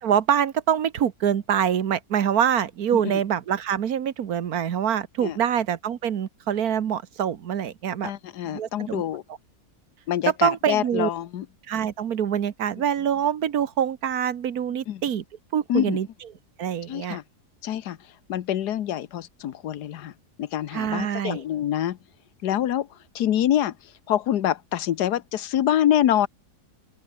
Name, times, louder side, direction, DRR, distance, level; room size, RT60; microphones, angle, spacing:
voice 1, 0.0-8.1 8.4-9.0 10.4-11.1 11.7-15.2 15.5-16.1 16.6-17.2 20.7-21.4, right 9 dB, 70° right, 1.6 m, -25 dB
voice 2, 8.0-9.2 10.1-11.5 14.9-15.0 15.7-16.0 16.9-17.2 17.6-18.0 18.3-20.1 20.4-22.0 22.4-22.9 23.1-23.7 24.1-26.3, left 11 dB, 85° left, 1.5 m, -25 dB
omnidirectional pair, 1.7 m